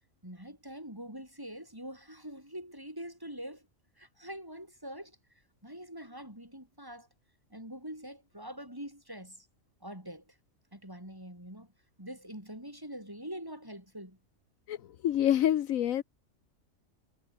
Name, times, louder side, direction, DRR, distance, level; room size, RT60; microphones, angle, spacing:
voice 1, 0.2-3.7 4.0-5.2 5.6-7.1 7.5-9.5 9.8-10.4 10.7-11.7 12.0-14.2, equal, 15° right, 7.3 m, -44 dB
voice 2, 15.0-16.0, left 11 dB, 75° left, 1.2 m, -26 dB
omnidirectional pair, 1.4 m